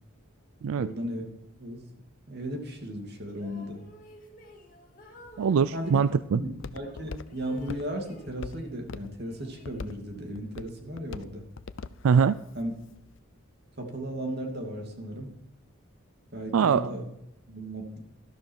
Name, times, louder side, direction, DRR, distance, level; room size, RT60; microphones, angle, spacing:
voice 1, 0.8-1.3 1.6-1.8 2.3-3.8 5.7-6.0 6.3-11.4 12.5-12.7 13.8-15.3 16.3-17.1 17.5-17.8, equal, 50° right, 2 dB, 2.6 m, -35 dB
sound 1, 3.3-6.2 6.8-8.8 9.1-10.2, right 1 dB, 40° left, 2.4 m, -53 dB
Walk footsteps, 5.3-13.2, left 4 dB, 60° left, 0.5 m, -45 dB
voice 2, 5.4-6.4 12.0-12.4 16.5-16.9, right 6 dB, 80° right, 15 dB, 0.4 m, -23 dB
13.0 x 12.0 x 4.7 m, 0.85 s
head